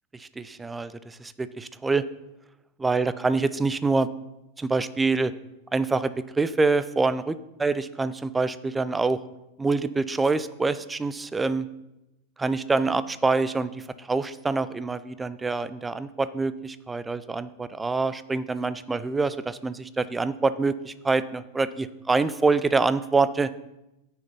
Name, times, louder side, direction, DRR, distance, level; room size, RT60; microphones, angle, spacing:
voice 1, 0.1-2.0 2.8-4.1 4.6-5.3 5.7-9.2 9.6-11.7 12.4-23.5, right 3 dB, 10° right, 15 dB, 0.5 m, -26 dB
8.8 x 6.7 x 5.5 m, 0.92 s
figure-of-eight pair, 90°, 0 cm